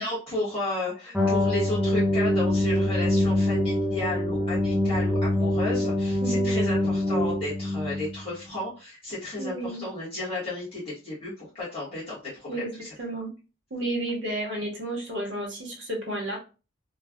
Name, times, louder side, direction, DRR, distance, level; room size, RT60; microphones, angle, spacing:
voice 1, 0.0-12.9, left 2 dB, 25° left, -9 dB, 1.3 m, -33 dB
sound 1, 1.1-8.2, left 1 dB, ahead, 0.4 m, -24 dB
voice 2, 9.4-9.9 12.5-13.3 13.7-16.4, right 1 dB, 60° right, -1 dB, 1.0 m, -32 dB
3.2 x 2.3 x 2.3 m, 0.32 s
head